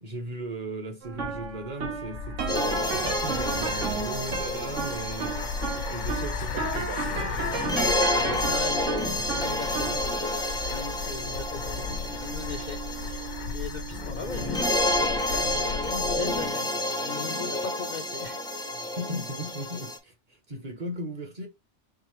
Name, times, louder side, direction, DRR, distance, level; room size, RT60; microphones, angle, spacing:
voice 1, 0.0-7.5 18.8-21.5, right 1 dB, 40° right, 0.7 m, -37 dB
sound 1, 1.0-18.2, right 4 dB, 85° right, 1.3 m, -36 dB
sound 2, 2.0-16.5, left 5 dB, 75° left, 0.9 m, -36 dB
sound 3, 2.5-20.0, left 1 dB, 5° left, 0.4 m, -30 dB
voice 2, 7.9-16.7 17.0-18.4 18.7-18.9, left 5 dB, 60° left, 0.5 m, -39 dB
4.8 x 3.2 x 3.0 m
omnidirectional pair, 1.2 m